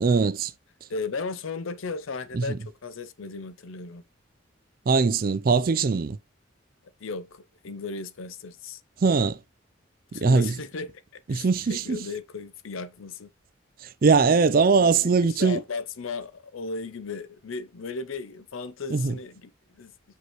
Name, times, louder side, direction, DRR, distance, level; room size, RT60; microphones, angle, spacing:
voice 1, 0.0-0.5 2.3-2.6 4.9-6.2 9.0-9.4 10.1-10.5 11.3-12.0 14.0-15.6 18.9-19.2, right 4 dB, 45° right, 0.4 m, -21 dB
voice 2, 0.9-4.0 7.0-8.8 10.1-13.3 14.8-19.9, left 4 dB, 85° left, 0.6 m, -36 dB
6.1 x 5.3 x 3.0 m
head